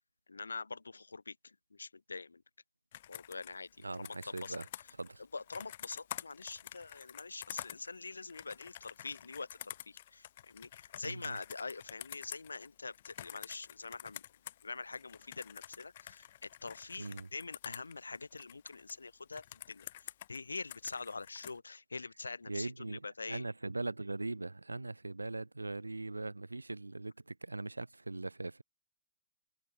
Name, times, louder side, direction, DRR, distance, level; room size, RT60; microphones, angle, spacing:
voice 1, 0.3-1.3 1.8-2.4 3.1-4.1 4.4-4.6 5.3-14.2 14.6-19.9 20.3-23.4, left 4 dB, 75° left, 1.4 m, -45 dB
Computer keyboard, 2.9-14.6 14.9-18.9 19.3-21.6, left 12 dB, 50° left, 4.7 m, -49 dB
voice 2, 3.8-4.7 4.9-5.3 11.0-11.4 17.0-17.3 22.5-28.6, right 2 dB, 80° right, 0.6 m, -40 dB
figure-of-eight pair, 110°, 0 cm